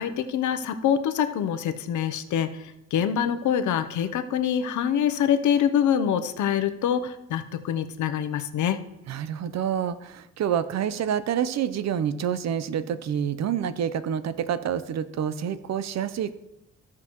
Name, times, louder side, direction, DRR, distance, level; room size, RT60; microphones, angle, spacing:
voice 1, 0.0-8.8, left 8 dB, 75° left, 9 dB, 0.8 m, -25 dB
voice 2, 9.1-16.3, right 9 dB, 60° right, 14 dB, 0.7 m, -28 dB
15.5 x 6.0 x 3.1 m, 0.90 s
cardioid pair, 90°, 30 cm